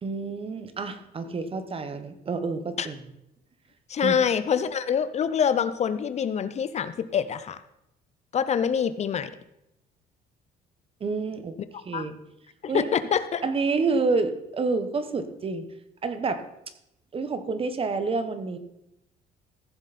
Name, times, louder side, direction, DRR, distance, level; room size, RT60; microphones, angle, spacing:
voice 1, 0.0-2.9 4.0-4.2 11.0-11.5 11.8-12.2 12.7-12.9 13.4-15.6 16.0-16.4 17.1-18.6, right 4 dB, 35° right, 10 dB, 1.1 m, -28 dB
voice 2, 3.9-7.6 8.3-9.3 11.9-12.0 12.6-13.4, left 7 dB, 40° left, 13 dB, 0.6 m, -25 dB
14.5 x 7.2 x 4.2 m, 0.83 s
cardioid pair, 110°, 17 cm